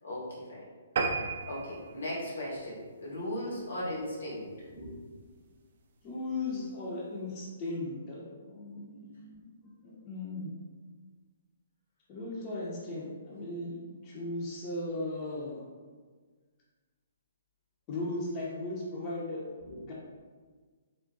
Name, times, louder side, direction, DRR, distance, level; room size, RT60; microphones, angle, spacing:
voice 1, 0.0-0.7 1.5-5.1 19.7-19.8, left 1 dB, 90° left, -6 dB, 1.2 m, -37 dB
sound 1, 1.0-3.7 4.2-4.4 4.8-4.9 5.2-5.3 5.6-5.7, right 4 dB, 60° right, 0.3 m, -35 dB
voice 2, 6.0-9.5 9.8-10.5 12.1-13.8 14.0-15.7 17.9-19.4 19.8-19.9, left 2 dB, 35° left, -5 dB, 0.6 m, -37 dB
3.5 x 2.2 x 2.5 m, 1.5 s
hypercardioid pair, 140°, 0 cm